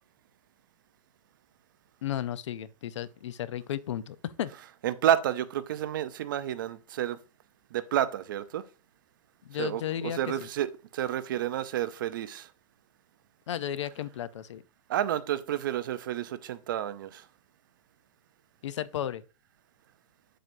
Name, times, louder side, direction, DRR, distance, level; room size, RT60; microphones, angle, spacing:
voice 1, 2.0-4.5 9.5-10.2 13.5-14.6 18.6-19.2, left 11 dB, 50° left, 0.6 m, -34 dB
voice 2, 4.8-7.2 7.7-8.6 9.6-12.5 14.9-17.3, right 11 dB, 35° right, 0.5 m, -30 dB
8.1 x 7.5 x 2.6 m
hypercardioid pair, 170°, 20 cm